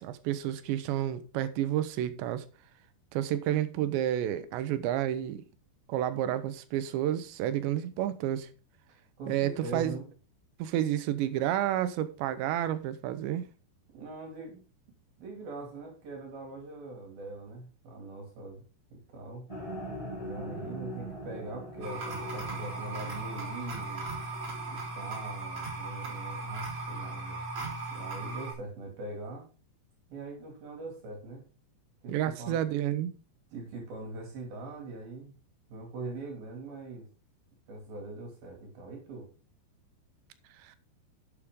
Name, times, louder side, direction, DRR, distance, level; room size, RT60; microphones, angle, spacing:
voice 1, 0.0-2.4 3.1-5.4 5.9-8.5 9.3-9.9 10.6-13.5 32.1-33.1 40.6-40.8, right 12 dB, 80° right, 3.0 m, -30 dB
voice 2, 8.9-10.1 13.9-14.6 15.2-18.6 18.9-19.5 20.2-24.1 24.7-27.4 27.9-29.5 30.1-31.4 32.0-32.6 33.5-35.4 35.7-37.1 37.7-39.3, right 2 dB, 60° right, 4.1 m, -42 dB
sound 1, 19.5-25.6, equal, 5° left, 3.8 m, -43 dB
sound 2, 21.8-28.5, right 3 dB, 35° right, 4.2 m, -37 dB
11.5 x 8.5 x 3.7 m
omnidirectional pair, 5.2 m